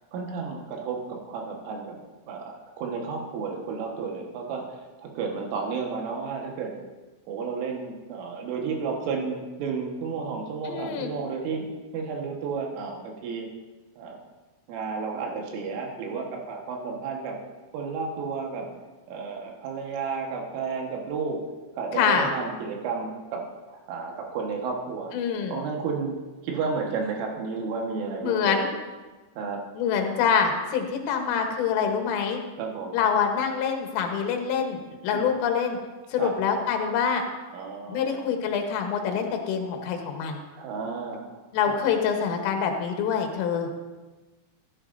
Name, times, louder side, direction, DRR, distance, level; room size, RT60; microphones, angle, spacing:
voice 1, 0.1-2.0 2.3-6.7 7.3-11.7 11.9-13.5 14.0-14.2 14.7-17.4 17.7-18.7 19.1-21.4 21.8-23.4 23.7-25.1 25.5-26.2 26.4-28.7 29.4-29.6 32.6-33.0 35.1-35.3 36.2-36.3 37.5-38.3 40.6-41.3 41.7-41.8, right 5 dB, 80° right, 0 dB, 3.9 m, -32 dB
voice 2, 10.7-11.1 22.0-22.3 25.1-25.6 28.2-28.7 29.8-32.4 32.9-35.8 36.1-37.2 37.9-40.4 41.5-43.7, left 7 dB, 85° left, 3 dB, 3.7 m, -25 dB
16.0 x 10.5 x 2.6 m, 1.2 s
omnidirectional pair, 5.7 m